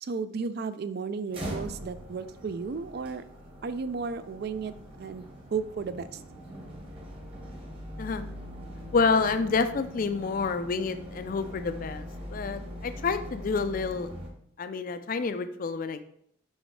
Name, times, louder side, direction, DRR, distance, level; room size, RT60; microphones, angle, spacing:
voice 1, 0.0-3.2 3.6-6.2, right 5 dB, 50° right, 13 dB, 0.4 m, -34 dB
sound 1, 1.3-14.3, equal, 25° right, 1.2 m, -42 dB
voice 2, 8.9-12.1 12.3-14.1 14.6-16.0, left 4 dB, 40° left, 10 dB, 0.4 m, -28 dB
6.3 x 5.1 x 3.2 m, 0.69 s
head